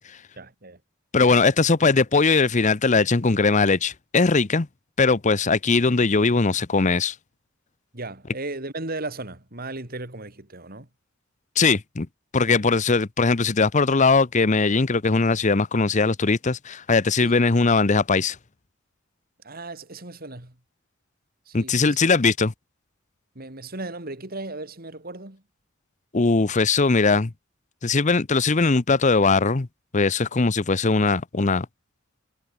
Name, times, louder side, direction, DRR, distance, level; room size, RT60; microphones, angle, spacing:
voice 1, 0.4-0.8 7.9-10.9 17.2-17.3 19.4-20.6 21.5-22.0 23.3-25.4, right 2 dB, 45° right, 3.3 m, -36 dB
voice 2, 1.1-4.7 5.0-7.1 11.6-12.1 12.3-18.4 21.5-22.5 26.1-27.3 27.8-29.7 29.9-31.7, left 4 dB, 35° left, 0.8 m, -20 dB
head